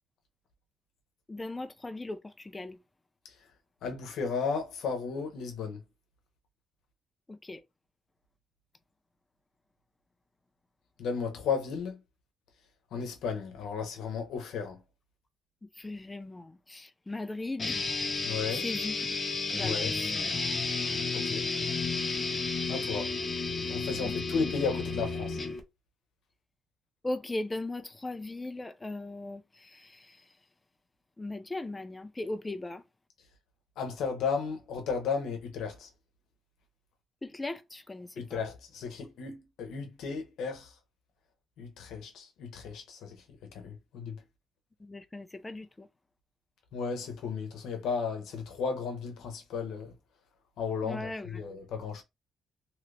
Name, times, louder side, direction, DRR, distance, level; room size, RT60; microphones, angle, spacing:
voice 1, 1.3-2.8 7.3-7.6 15.7-17.8 18.6-19.0 19.5-20.1 23.9-24.1 27.0-30.3 31.2-32.8 37.2-38.4 44.8-45.9 50.8-51.5, left 2 dB, 20° left, 0.4 m, -38 dB
voice 2, 3.8-5.8 11.0-12.0 12.9-14.8 18.2-18.6 19.6-19.9 21.1-21.4 22.7-23.1 23.7-25.4 33.8-35.9 38.2-40.7 41.6-43.2 43.5-44.2 46.7-49.9 50.6-52.0, left 5 dB, 80° left, 0.8 m, -34 dB
sound 1, 17.6-25.6, left 4 dB, 35° left, 0.9 m, -32 dB
2.8 x 2.4 x 3.2 m
cardioid pair, 90°, 0 cm